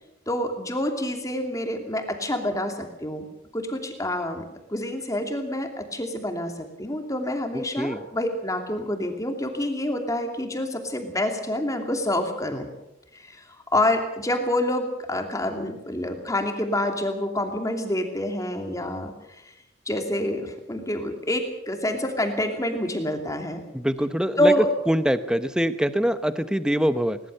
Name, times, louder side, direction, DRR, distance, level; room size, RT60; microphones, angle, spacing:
voice 1, 0.3-3.2 3.5-4.4 4.7-12.7 13.1-13.4 13.7-19.1 19.9-23.6 24.4-24.7, left 1 dB, 15° left, 4 dB, 2.8 m, -27 dB
voice 2, 7.5-8.0 23.7-24.5 24.9-27.2, equal, 5° right, 11 dB, 0.9 m, -24 dB
21.0 x 19.5 x 6.7 m, 0.90 s
head